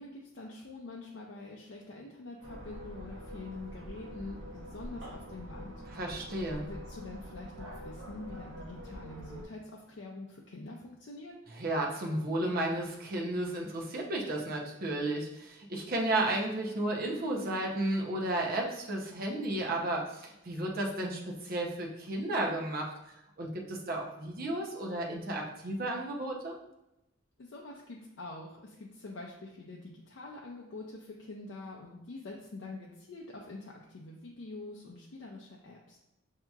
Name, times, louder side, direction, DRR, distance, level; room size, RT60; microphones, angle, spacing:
voice 1, 0.0-6.3 6.6-11.4 27.4-36.0, left 2 dB, 65° left, -2 dB, 0.5 m, -45 dB
sound 1, 2.4-9.4, equal, 75° right, 0.9 m, -45 dB
voice 2, 5.9-6.6 11.6-22.9 23.4-26.5, right 1 dB, 45° right, -1 dB, 0.7 m, -33 dB
5.7 x 2.8 x 2.3 m, 0.90 s
head